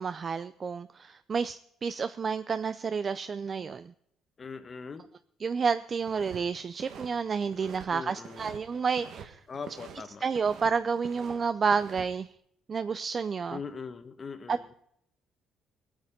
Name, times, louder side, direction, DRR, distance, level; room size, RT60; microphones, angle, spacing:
voice 1, 0.0-3.9 5.4-9.4 10.2-12.3 12.7-13.6 14.5-14.8, right 5 dB, 35° right, 13 dB, 0.4 m, -30 dB
voice 2, 4.4-5.1 7.9-8.5 9.5-10.2 13.5-14.7, left 5 dB, 30° left, 10 dB, 1.2 m, -41 dB
sound 1, 6.0-6.4 6.7-7.9 8.2-9.3 9.5-10.7 11.0-12.0, right 7 dB, 65° right, 1.6 m, -46 dB
19.5 x 8.8 x 5.1 m, 0.72 s
cardioid pair, 125°, 0 cm